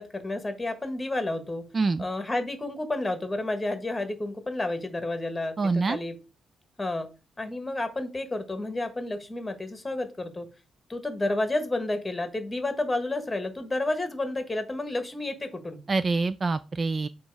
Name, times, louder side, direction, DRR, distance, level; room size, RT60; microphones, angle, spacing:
voice 1, 0.0-1.6 2.0-6.1 6.8-7.1 7.4-10.5 10.9-15.8, left 2 dB, 15° left, 1.3 m, -30 dB
voice 2, 1.7-2.0 5.6-6.0 15.9-17.1, right 3 dB, 35° right, 0.3 m, -25 dB
7.3 x 3.0 x 4.7 m
cardioid pair, 110°, 0 cm